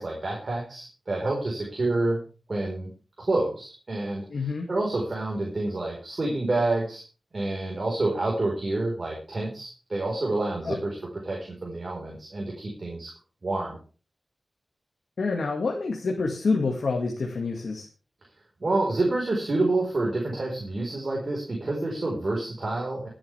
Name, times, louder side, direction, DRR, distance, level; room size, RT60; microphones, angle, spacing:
voice 1, 0.0-2.2 2.5-2.9 3.2-7.0 7.3-11.0 11.2-13.1 13.4-13.8 18.6-23.1, right 2 dB, 40° right, -2 dB, 4.5 m, -28 dB
voice 2, 4.3-4.7 10.6-10.8 15.2-17.9, left 4 dB, 75° left, 1 dB, 2.0 m, -27 dB
23.0 x 8.8 x 3.5 m, 0.36 s
wide cardioid pair, 125°, 0 cm